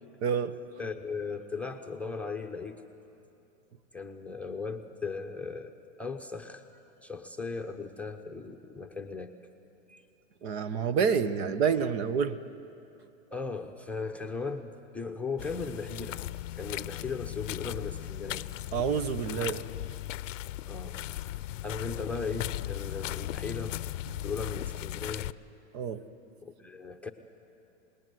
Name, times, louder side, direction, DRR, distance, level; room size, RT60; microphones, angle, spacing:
voice 1, 0.2-0.5 10.4-12.4 18.7-19.6 25.7-26.0, right 6 dB, 55° right, 13 dB, 1.3 m, -28 dB
voice 2, 0.8-2.8 3.9-9.3 9.9-10.0 13.3-16.2 16.6-18.5 20.6-23.8 24.2-25.3 26.4-27.1, left 4 dB, 5° left, 2 dB, 0.8 m, -37 dB
sound 1, 15.4-25.3, left 14 dB, 75° left, 0.7 m, -37 dB
27.5 x 19.5 x 9.3 m, 2.8 s
hypercardioid pair, 140°, 39 cm